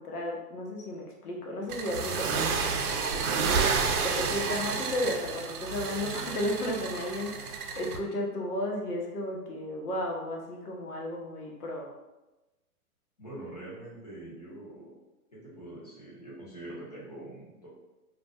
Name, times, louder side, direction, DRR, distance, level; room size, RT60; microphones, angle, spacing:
voice 1, 0.0-7.4 7.8-11.9, left 1 dB, 85° left, 0 dB, 0.9 m, -34 dB
sound 1, 1.7-8.0, right 5 dB, 80° right, 0.6 m, -30 dB
voice 2, 13.2-14.9 15.3-17.7, right 1 dB, 30° left, -7 dB, 0.6 m, -44 dB
2.4 x 2.1 x 3.5 m, 1.1 s
hypercardioid pair, 180°, 44 cm